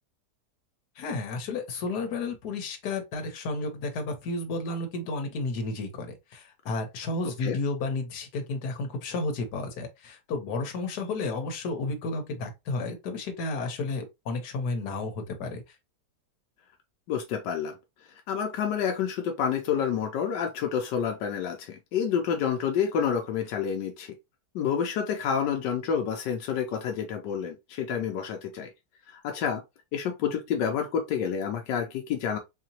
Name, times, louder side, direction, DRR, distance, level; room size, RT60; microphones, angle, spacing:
voice 1, 1.0-15.8, left 3 dB, 70° left, 1.5 m, -32 dB
voice 2, 17.1-17.8 18.3-24.1 24.5-28.7 29.1-29.6 29.9-32.4, left 7 dB, 85° left, 1.3 m, -29 dB
4.2 x 2.8 x 2.8 m
omnidirectional pair, 1.8 m